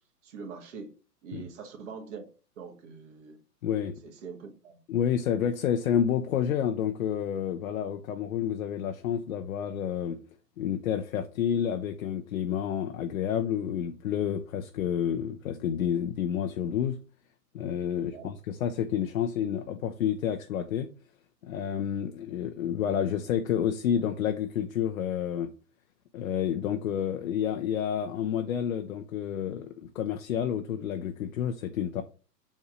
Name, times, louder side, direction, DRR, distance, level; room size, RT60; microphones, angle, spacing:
voice 1, 0.2-0.9 1.2-2.3 2.6-3.4 4.0-4.8 17.9-18.3 22.1-22.2, right 5 dB, 45° right, 1.5 m, -43 dB
voice 2, 3.6-4.0 4.9-10.2 10.6-17.0 17.5-20.9 21.4-25.5 26.1-32.0, left 9 dB, 55° left, 0.7 m, -29 dB
7.2 x 2.7 x 4.9 m
figure-of-eight pair, 115°, 49 cm